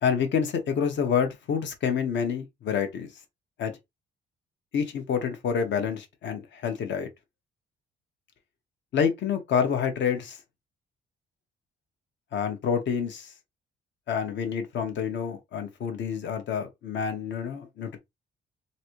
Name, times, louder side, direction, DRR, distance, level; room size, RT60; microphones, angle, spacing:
voice 1, 0.0-3.1 3.6-3.7 4.7-7.1 8.9-10.4 12.3-13.3 14.1-18.0, left 7 dB, 65° left, 1.1 m, -28 dB
3.2 x 2.7 x 3.0 m
cardioid pair, 90°, 20 cm